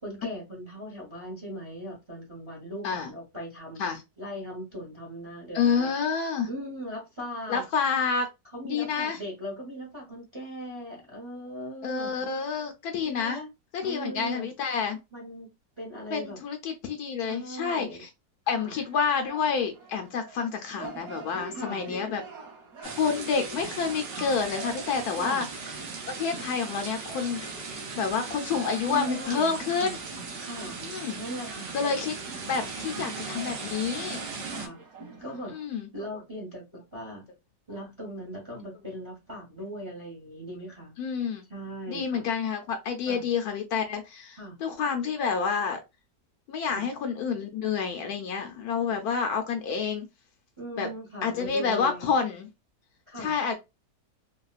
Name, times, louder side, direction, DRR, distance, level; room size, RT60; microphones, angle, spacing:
voice 1, 0.0-5.9 6.4-7.7 8.5-12.3 13.0-13.5 13.8-14.5 15.1-16.4 17.2-18.0 18.5-18.7 21.5-21.8 25.2-25.4 28.8-30.0 30.4-30.8 31.2-31.8 32.7-33.4 34.4-34.8 35.2-35.6 35.9-36.6 36.9-37.2 37.7-40.9 41.5-42.2 43.1-43.2 44.4-44.6 46.7-46.9 50.6-52.2 53.1-53.4, equal, 25° right, 0.6 m, -39 dB
voice 2, 5.5-6.5 7.5-8.3 8.6-9.2 11.8-13.4 13.7-15.0 16.1-18.1 18.5-22.2 22.8-25.5 26.2-27.4 27.9-30.0 30.8-31.2 31.7-32.2 32.5-34.2 35.5-35.9 41.0-41.4 41.9-45.8 46.5-50.1 50.8-50.9 51.2-52.5 53.2-53.6, left 6 dB, 70° left, 1.0 m, -28 dB
sound 1, 18.7-35.6, right 4 dB, 60° right, 1.5 m, -45 dB
sound 2, 22.8-34.7, right 4 dB, 80° right, 1.5 m, -38 dB
3.5 x 2.2 x 2.3 m
omnidirectional pair, 1.8 m